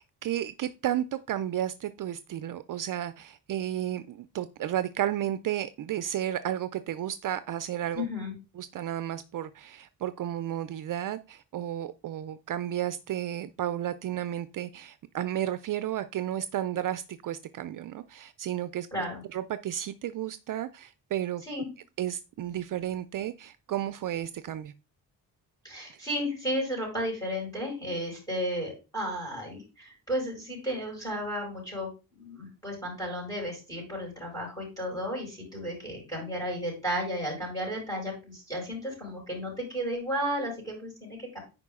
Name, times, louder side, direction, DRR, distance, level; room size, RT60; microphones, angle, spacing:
voice 1, 0.0-8.1 8.6-18.9 19.3-21.4 22.0-24.7 25.9-26.0, right 11 dB, 55° right, 0.4 m, -33 dB
voice 2, 7.9-8.3 18.9-19.2 21.5-21.7 25.6-41.4, equal, 10° left, 5.0 m, -33 dB
9.7 x 4.8 x 3.6 m
wide cardioid pair, 170°, 39 cm